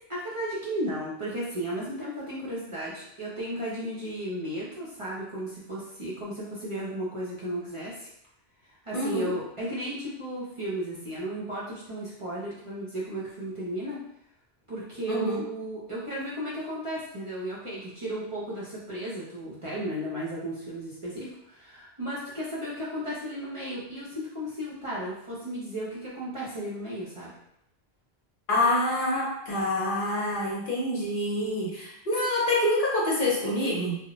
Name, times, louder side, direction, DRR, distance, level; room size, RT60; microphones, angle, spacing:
voice 1, 0.1-8.1 8.6-14.0 14.7-27.3, right 1 dB, 40° right, -8 dB, 0.6 m, -34 dB
voice 2, 8.9-9.3 15.1-15.4 28.5-34.0, left 1 dB, 60° left, -3 dB, 0.8 m, -26 dB
2.1 x 2.0 x 3.7 m, 0.75 s
omnidirectional pair, 1.0 m